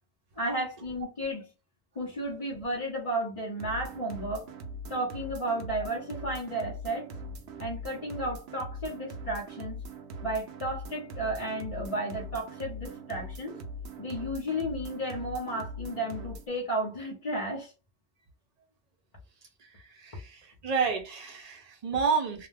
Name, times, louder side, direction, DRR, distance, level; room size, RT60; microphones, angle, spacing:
voice 1, 0.4-1.5 2.0-4.5 4.9-7.3 7.6-9.8 10.2-13.6 14.0-17.7, right 1 dB, 35° left, 0.7 m, -33 dB
sound 1, 3.6-16.5, equal, 90° right, 0.9 m, -41 dB
voice 2, 19.9-22.5, right 5 dB, 45° right, 0.7 m, -30 dB
2.4 x 2.1 x 3.2 m
omnidirectional pair, 1.1 m